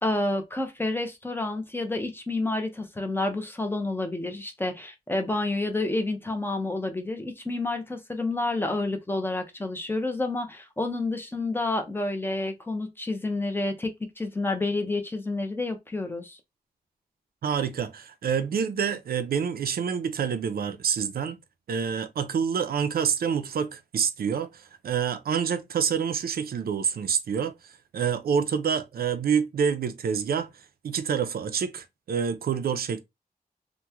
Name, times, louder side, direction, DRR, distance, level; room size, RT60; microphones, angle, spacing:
voice 1, 0.0-13.9 14.2-16.4, left 2 dB, 15° left, 0.6 m, -29 dB
voice 2, 17.4-21.4 21.7-27.5 27.9-30.5 30.8-33.0, right 7 dB, 90° right, 0.4 m, -27 dB
2.9 x 2.1 x 3.4 m
wide cardioid pair, 170°, 15 cm